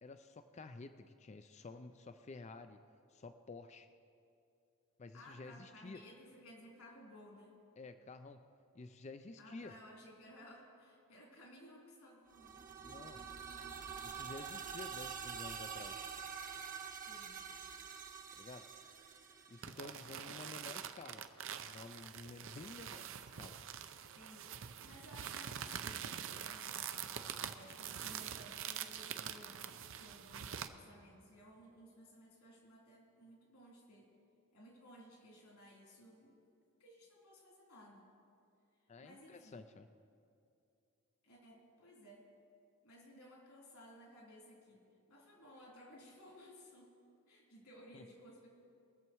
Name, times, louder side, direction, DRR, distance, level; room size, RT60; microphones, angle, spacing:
voice 1, 0.0-2.8 3.1-3.9 5.0-6.0 7.8-8.5 8.7-9.8 12.8-13.3 14.0-16.1 18.3-18.7 19.5-21.3 21.6-23.1 23.3-23.6 38.9-39.9 47.9-48.0, left 3 dB, 30° left, 9 dB, 0.4 m, -51 dB
voice 2, 5.1-7.5 9.4-12.6 17.0-17.4 24.2-24.4 24.8-34.1 34.5-36.4 36.8-38.1 39.0-39.6 41.2-42.3 42.8-44.8 45.1-46.9 47.3-48.5, equal, 80° left, -3 dB, 3.8 m, -58 dB
sound 1, 12.3-20.1, right 7 dB, 35° right, 1.0 m, -47 dB
sound 2, 19.6-30.7, right 8 dB, 60° right, 0.6 m, -45 dB
22.5 x 7.5 x 4.6 m, 2.6 s
head